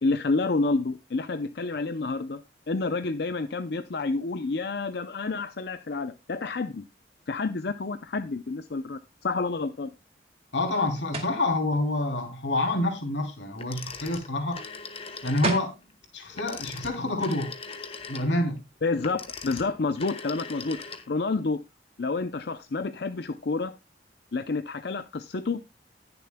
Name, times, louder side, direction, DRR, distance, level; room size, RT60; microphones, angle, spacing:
voice 1, 0.0-2.4 2.7-6.8 7.3-9.9 18.8-21.6 22.0-23.7 24.3-25.6, left 3 dB, 65° left, 0.5 m, -29 dB
voice 2, 10.5-14.6 15.2-15.7 16.1-17.5 18.1-18.5, left 2 dB, 90° left, 2.9 m, -27 dB
sound 1, 11.1-11.4 15.1-15.2 15.4-15.8, right 2 dB, 35° right, 2.2 m, -30 dB
Telephone, 13.6-15.7 16.3-21.3, left 4 dB, 30° left, 1.2 m, -41 dB
20.0 x 6.9 x 2.2 m
head